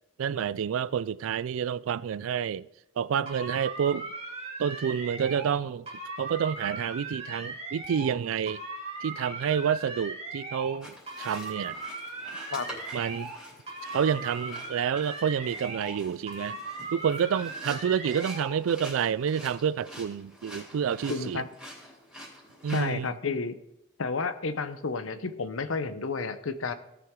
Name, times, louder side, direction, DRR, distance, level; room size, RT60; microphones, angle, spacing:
voice 1, 0.2-2.7 3.0-4.1 4.6-5.9 6.2-8.6 9.0-11.8 12.9-13.3 13.9-16.6 16.9-21.4 22.6-23.1, right 7 dB, 85° right, 0.3 m, -29 dB
sound 1, 3.3-5.6 5.9-8.2 8.5-10.8 11.1-13.4 13.7-16.0 16.3-18.6, right 3 dB, 30° right, 2.4 m, -39 dB
sound 2, 10.8-22.9, equal, 5° right, 3.1 m, -47 dB
voice 2, 21.1-21.5 22.7-23.6 24.0-26.7, left 4 dB, 90° left, 0.8 m, -31 dB
17.0 x 5.9 x 3.7 m
head